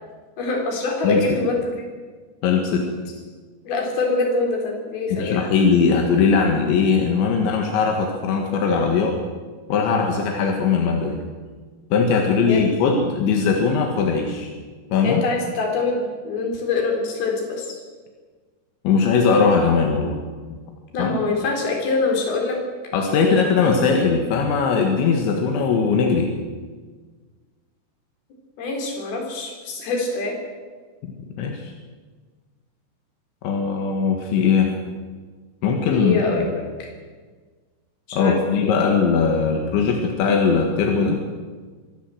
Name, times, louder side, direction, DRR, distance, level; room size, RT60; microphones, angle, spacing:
voice 1, 0.4-1.9 3.6-5.4 12.4-12.7 15.0-17.8 20.9-22.6 23.1-23.4 28.6-30.4 35.9-36.9 38.1-38.7, left 3 dB, 60° left, 1 dB, 5.8 m, -25 dB
voice 2, 1.0-1.4 2.4-3.1 5.1-9.2 9.7-11.2 11.9-14.5 14.9-15.2 18.8-20.2 20.5-20.6 21.0-21.2 22.9-26.3 31.0-31.1 31.4-31.7 33.4-34.7 35.6-36.5 38.1-41.2, left 5 dB, 85° left, 2 dB, 4.0 m, -20 dB
24.0 x 15.0 x 7.9 m, 1.5 s
omnidirectional pair, 5.1 m